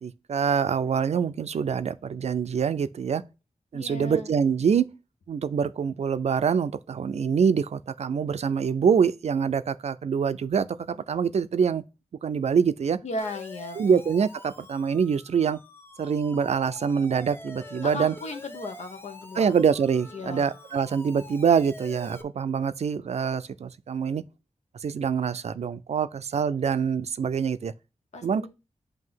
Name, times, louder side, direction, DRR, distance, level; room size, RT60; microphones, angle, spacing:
voice 1, 0.0-3.2 3.7-4.9 5.3-11.8 12.2-13.0 13.8-15.6 16.0-18.1 19.4-24.2 24.8-27.7 28.2-28.5, right 6 dB, 70° right, 0.4 m, -25 dB
voice 2, 3.7-4.3 13.0-14.0 17.8-19.5 20.1-20.5 28.1-28.5, left 2 dB, 85° left, 1.0 m, -36 dB
Siren, 13.2-22.2, left 1 dB, 20° left, 0.7 m, -46 dB
7.6 x 2.8 x 5.6 m
wide cardioid pair, 85°, 11 cm